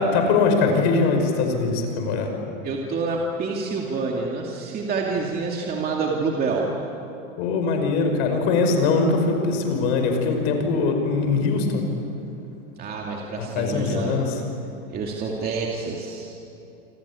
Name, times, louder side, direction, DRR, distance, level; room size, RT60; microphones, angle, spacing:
voice 1, 0.0-2.3 7.4-11.8 13.4-14.4, left 4 dB, 50° left, 4 dB, 5.5 m, -22 dB
voice 2, 2.6-6.7 12.8-14.2 14.9-16.3, right 4 dB, 20° right, -1 dB, 2.5 m, -27 dB
28.5 x 24.5 x 8.6 m, 2.9 s
supercardioid pair, 155°, 41 cm